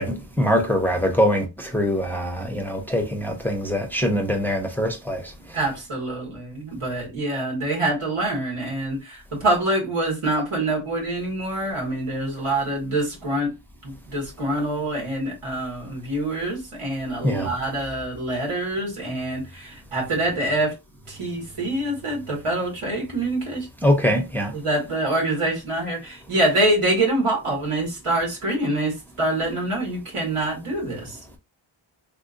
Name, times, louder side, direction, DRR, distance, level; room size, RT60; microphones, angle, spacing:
voice 1, 0.0-5.2 17.2-17.5 23.8-24.5, equal, 5° left, 0.6 m, -23 dB
voice 2, 5.5-13.5 13.8-20.7 21.1-23.7 24.5-31.2, right 1 dB, 90° right, 2.0 m, -25 dB
3.5 x 2.6 x 2.5 m
wide cardioid pair, 95°, 49 cm